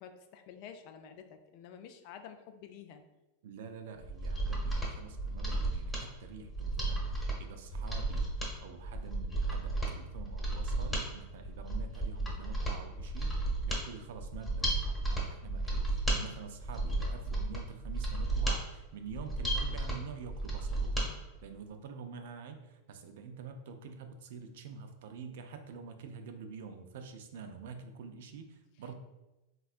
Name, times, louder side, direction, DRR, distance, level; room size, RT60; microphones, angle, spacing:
voice 1, 0.0-3.0, left 7 dB, 55° left, 7 dB, 0.3 m, -50 dB
voice 2, 3.4-8.3 8.6-13.3 13.6-28.9, right 5 dB, 70° right, 7 dB, 0.3 m, -47 dB
Mechanisms, 4.0-21.1 21.4-21.5, right 2 dB, 5° left, 0.9 m, -34 dB
3.4 x 2.2 x 2.4 m, 1.0 s
hypercardioid pair, 115°, 0 cm